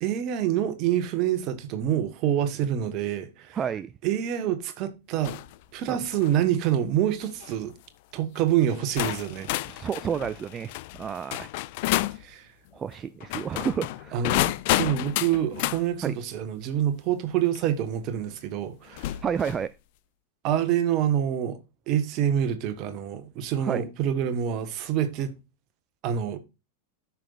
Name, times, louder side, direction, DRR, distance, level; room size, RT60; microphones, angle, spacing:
voice 1, 0.0-3.6 4.0-5.4 5.7-7.7 8.1-9.5 12.2-12.5 14.1-19.2 20.4-21.6 21.9-25.3 26.0-26.4, right 10 dB, 40° right, 1.3 m, -26 dB
voice 2, 3.5-3.9 5.9-6.0 9.7-10.7 11.0-11.5 12.7-14.3 16.0-16.2 19.2-19.7 23.6-23.8, right 7 dB, 20° right, 0.3 m, -30 dB
sound 1, 5.2-5.5 6.0-6.4 7.2-7.5 8.4-8.5 9.0-12.2 13.2-15.8 17.6-17.7 18.9-19.7, left 18 dB, 50° left, 0.4 m, -30 dB
14.0 x 5.8 x 2.5 m
figure-of-eight pair, 90°, 0 cm